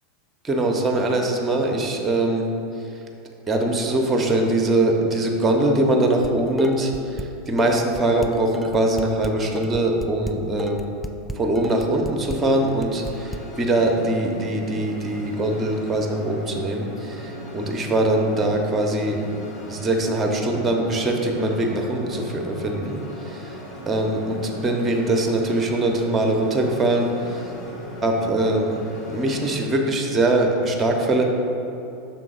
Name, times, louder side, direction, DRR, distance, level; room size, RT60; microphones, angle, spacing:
voice 1, 0.4-2.5 2.8-2.9 3.5-10.9 11.3-19.2 19.7-23.6 23.9-27.5 28.0-28.7 29.1-31.2, right 1 dB, 15° right, 2 dB, 0.8 m, -22 dB
Dishes pots and pans, 6.2-7.3 7.6-13.4, left 2 dB, ahead, 0.3 m, -32 dB
sound 1, 12.4-29.6, left 1 dB, 35° left, 1.3 m, -38 dB
6.0 x 3.8 x 5.0 m, 2.7 s
figure-of-eight pair, 85°, 0 cm